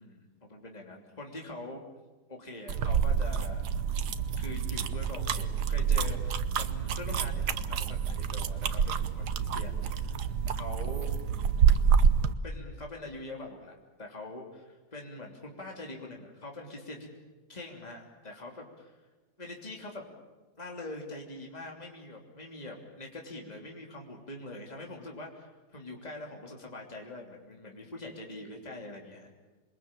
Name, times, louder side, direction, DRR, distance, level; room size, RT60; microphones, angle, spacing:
voice 1, 0.0-1.8 2.3-3.7 4.4-11.1 12.4-17.1 17.5-19.0 19.4-20.0 20.6-29.3, left 2 dB, 25° left, 0 dB, 3.3 m, -44 dB
sound 1, 2.7-12.3, right 7 dB, 90° right, 1.6 m, -28 dB
27.5 x 22.0 x 9.0 m, 1.3 s
omnidirectional pair, 1.7 m